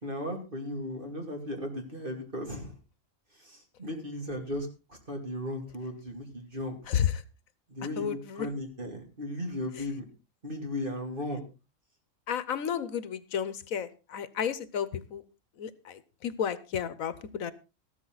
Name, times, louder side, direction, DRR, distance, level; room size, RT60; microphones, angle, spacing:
voice 1, 0.0-2.7 3.4-6.8 7.7-10.0 10.4-11.4, left 1 dB, 40° right, 3 dB, 3.3 m, -36 dB
voice 2, 6.9-7.2 8.0-8.5 12.3-15.2 15.6-17.5, left 8 dB, 80° left, 16 dB, 1.4 m, -32 dB
14.0 x 13.0 x 4.0 m, 0.30 s
omnidirectional pair, 1.4 m